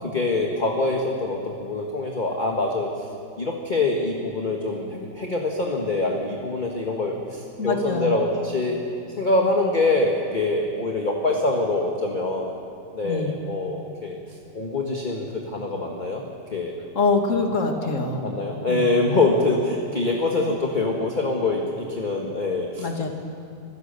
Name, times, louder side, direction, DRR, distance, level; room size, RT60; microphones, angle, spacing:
voice 1, 0.0-2.9 3.4-8.8 9.2-12.5 12.9-14.2 14.5-16.2 16.5-16.8 17.4-17.5 18.2-23.1, left 2 dB, 25° left, 0 dB, 1.5 m, -24 dB
voice 2, 7.6-8.1 13.0-13.3 16.9-18.2 18.7-18.9 22.8-23.1, left 4 dB, 45° left, 3 dB, 2.3 m, -24 dB
25.5 x 16.0 x 6.8 m, 2.6 s
omnidirectional pair, 1.9 m